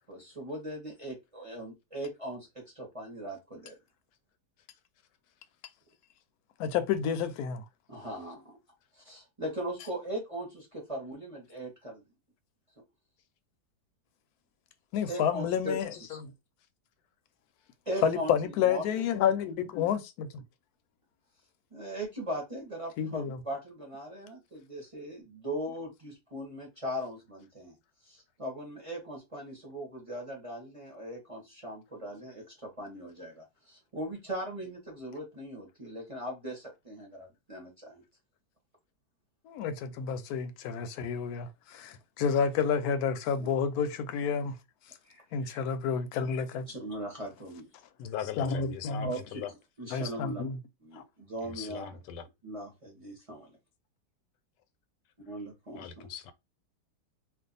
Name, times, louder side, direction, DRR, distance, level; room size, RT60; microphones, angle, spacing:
voice 1, 0.1-3.8 7.9-8.4 8.9-12.0 15.1-16.2 17.9-19.1 21.7-27.8 28.0-38.0 43.4-43.5 45.0-45.6 46.7-47.7 49.0-50.4 50.8-51.0 51.3-51.9 52.4-53.5 55.3-56.1, right 1 dB, 30° right, 0.7 m, -39 dB
voice 2, 6.6-7.6 14.9-15.9 16.2-16.3 18.0-20.4 23.0-23.4 39.5-44.6 45.3-46.7 48.4-49.1 49.9-50.6, left 7 dB, 70° left, 1.0 m, -30 dB
voice 3, 48.0-49.5 51.4-52.2 55.8-56.3, left 9 dB, 90° left, 1.2 m, -40 dB
2.6 x 2.4 x 3.9 m
omnidirectional pair, 1.8 m